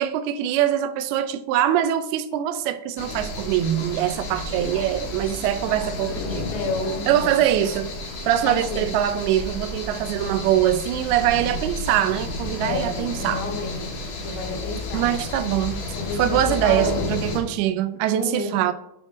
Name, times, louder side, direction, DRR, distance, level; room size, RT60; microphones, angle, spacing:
voice 1, 0.0-6.5 7.1-7.9 8.3-13.5 14.9-15.8 16.1-18.7, right 11 dB, 90° right, 2.5 m, -23 dB
sound 1, 3.0-17.4, left 2 dB, 65° left, 2.6 m, -31 dB
voice 2, 6.5-7.4 8.4-8.9 12.6-13.8 14.2-15.1 15.9-17.2 18.1-18.6, left 2 dB, 80° left, 3.2 m, -30 dB
7.7 x 4.4 x 4.9 m
omnidirectional pair, 4.4 m